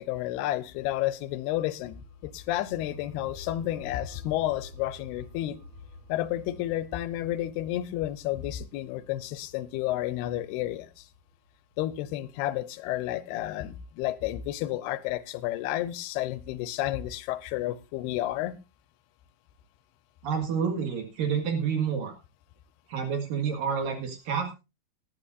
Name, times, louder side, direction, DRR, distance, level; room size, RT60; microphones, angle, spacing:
voice 1, 0.0-5.6 6.1-11.1 11.8-18.5, left 14 dB, 85° left, 2.8 m, -31 dB
sound 1, 1.8-11.7, left 3 dB, 45° right, 4.9 m, -49 dB
voice 2, 20.2-22.2 22.9-24.5, right 6 dB, 65° right, 3.4 m, -29 dB
19.5 x 11.0 x 2.5 m
omnidirectional pair, 4.6 m